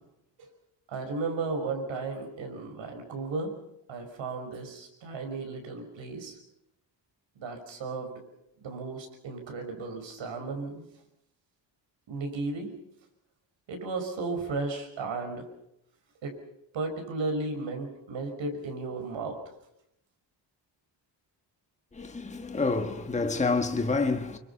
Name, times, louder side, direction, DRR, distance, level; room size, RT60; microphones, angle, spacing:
voice 1, 0.9-3.5 3.9-6.4 7.4-8.2 8.6-10.9 12.1-12.7 13.7-15.5 16.2-16.3 16.7-19.4, right 3 dB, 85° right, 5.7 m, -34 dB
voice 2, 21.9-24.4, left 3 dB, 15° left, 1.3 m, -28 dB
26.5 x 24.0 x 5.7 m
wide cardioid pair, 165°, 44 cm